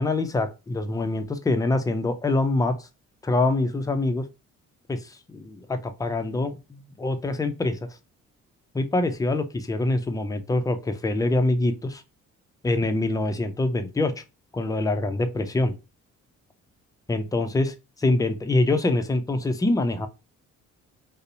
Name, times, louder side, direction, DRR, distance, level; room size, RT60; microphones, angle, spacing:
voice 1, 0.0-2.7 3.2-4.2 4.9-7.8 8.7-12.0 12.6-14.1 14.5-15.7 17.1-20.1, left 2 dB, 10° left, 0.4 m, -25 dB
2.7 x 2.0 x 2.5 m
cardioid pair, 90°, 30 cm